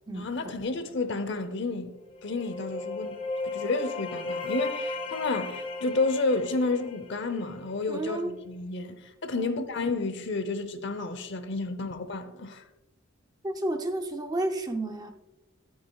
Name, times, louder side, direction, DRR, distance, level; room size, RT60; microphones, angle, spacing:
voice 1, 0.1-1.9 2.2-12.6, left 3 dB, 55° left, 0.8 m, -31 dB
sound 1, 2.1-7.8, left 3 dB, 25° left, 0.8 m, -35 dB
voice 2, 7.9-8.4 9.3-9.7 13.4-15.1, right 1 dB, 20° right, 0.6 m, -31 dB
12.0 x 8.9 x 2.3 m
head